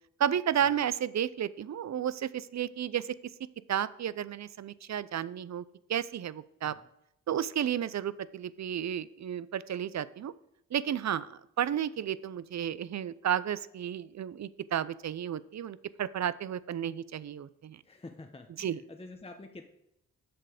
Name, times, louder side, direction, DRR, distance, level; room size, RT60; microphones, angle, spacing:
voice 1, 0.2-3.1 3.7-5.6 5.9-6.8 7.3-10.3 10.7-17.8 18.6-18.8, right 9 dB, 50° right, 18 dB, 0.5 m, -32 dB
voice 2, 17.8-19.6, left 2 dB, 15° left, 4 dB, 0.9 m, -48 dB
7.7 x 6.7 x 5.0 m, 0.80 s
supercardioid pair, 45°, 35 cm